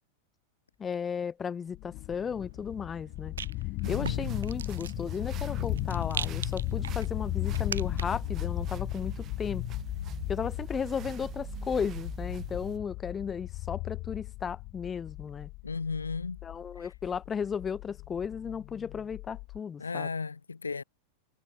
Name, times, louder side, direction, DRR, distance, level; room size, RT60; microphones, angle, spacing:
voice 1, 0.8-3.3 3.9-9.6 10.3-15.5 16.4-20.1, left 7 dB, 20° left, 4.5 m, -35 dB
sound 1, 1.7-19.6, left 23 dB, 40° left, 5.5 m, -36 dB
Rattle, 2.2-8.3, right 8 dB, 65° right, 4.3 m, -42 dB
voice 2, 3.8-4.4 15.6-16.4 16.8-16.9 19.8-20.8, left 4 dB, 75° left, 1.9 m, -35 dB
sound 2, 3.8-12.8, right 12 dB, 30° right, 5.8 m, -43 dB
figure-of-eight pair, 90°, 0 cm